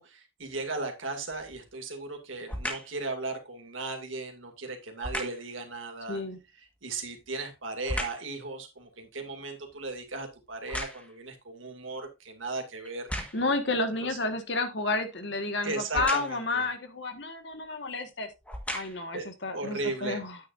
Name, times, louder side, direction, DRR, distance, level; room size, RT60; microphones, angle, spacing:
voice 1, 0.0-6.2 6.8-13.1 14.0-14.2 15.6-16.7 19.1-19.3 19.5-20.2, right 3 dB, 85° right, 4 dB, 2.4 m, -36 dB
sound 1, 1.3-1.7 2.5-3.0 5.0-5.5 6.9-8.3 8.8-11.3 12.0-12.1 12.8-13.6 15.9-16.5 17.5-17.7 18.3-19.2 19.8-19.9, equal, 5° left, 1.5 m, -37 dB
voice 2, 13.3-18.3 18.7-20.4, left 3 dB, 60° left, 7 dB, 1.6 m, -31 dB
9.3 x 9.2 x 2.6 m, 0.25 s
head